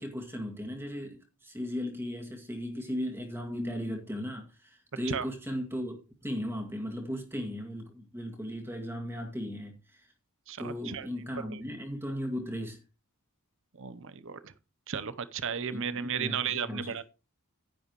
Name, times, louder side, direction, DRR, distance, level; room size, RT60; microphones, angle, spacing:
voice 1, 0.0-10.1 10.6-12.8 15.7-17.0, equal, 10° right, 2.0 m, -37 dB
voice 2, 10.5-11.1 11.5-11.6 13.7-14.5 14.9-17.0, right 7 dB, 60° right, 0.8 m, -34 dB
10.5 x 9.9 x 3.1 m
head